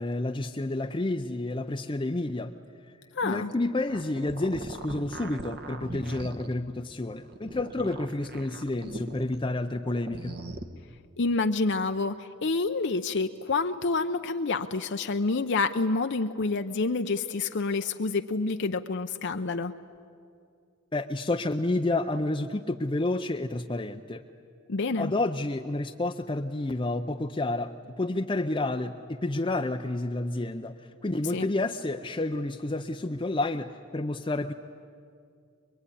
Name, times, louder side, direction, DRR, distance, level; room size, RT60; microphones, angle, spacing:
voice 1, 0.0-2.5 3.2-10.3 20.9-24.2 25.0-34.5, left 2 dB, 25° left, 5 dB, 0.6 m, -30 dB
voice 2, 3.2-3.5 11.2-19.7 24.7-25.1 31.3-31.5, left 3 dB, 60° left, 6 dB, 0.7 m, -28 dB
sound 1, 3.7-6.5 7.2-9.4 9.8-10.6, right 2 dB, 50° right, 1.3 m, -40 dB
24.5 x 22.0 x 10.0 m, 2.4 s
head